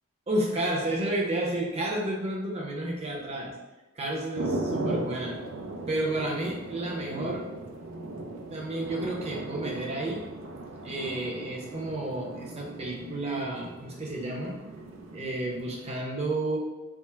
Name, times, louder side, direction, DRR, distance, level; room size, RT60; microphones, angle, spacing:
voice 1, 0.3-3.5 3.9-5.4 5.9-7.5 8.5-10.2 10.8-14.6 15.1-16.6, right 1 dB, 30° right, -3 dB, 0.7 m, -31 dB
sound 1, 4.4-15.9, right 2 dB, 80° right, 0.5 m, -37 dB
3.6 x 2.1 x 4.3 m, 1.1 s
head